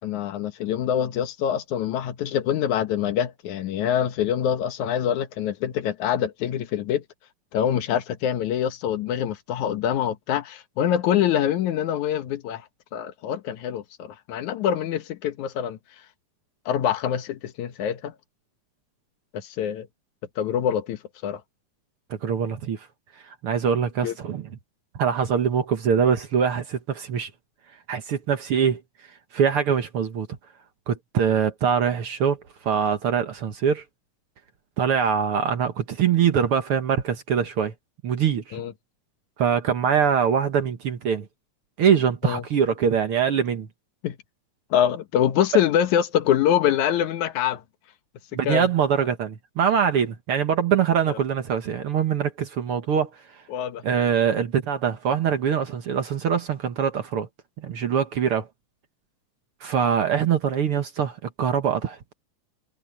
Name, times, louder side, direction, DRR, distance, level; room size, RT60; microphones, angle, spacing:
voice 1, 0.0-7.0 7.5-12.6 12.9-15.8 16.7-18.1 19.3-19.9 20.4-21.4 24.0-24.1 38.5-38.7 42.2-42.4 44.0-44.2 44.7-47.6 48.5-48.7 51.1-51.2 53.5-53.8, left 10 dB, 80° left, 2.6 m, -25 dB
voice 2, 22.1-22.9 23.1-24.6 24.9-27.3 27.9-30.3 30.9-33.8 34.8-37.7 38.0-38.6 39.4-41.3 41.8-43.7 45.5-45.6 48.3-53.4 53.8-57.3 57.6-58.5 59.6-62.0, right 7 dB, 55° right, 1.8 m, -23 dB
omnidirectional pair, 3.4 m